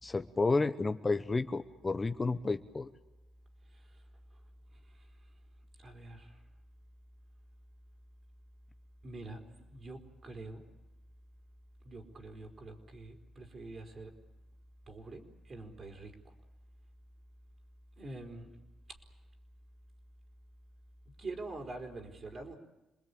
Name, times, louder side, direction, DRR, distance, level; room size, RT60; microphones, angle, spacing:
voice 1, 0.0-2.9, left 3 dB, 25° left, 9 dB, 1.0 m, -31 dB
voice 2, 5.8-6.4 9.0-10.7 11.8-14.1 14.9-16.3 18.0-18.5 21.2-22.5, right 2 dB, 40° right, 3 dB, 4.6 m, -45 dB
27.5 x 21.0 x 8.6 m, 1.0 s
cardioid pair, 90°, 0 cm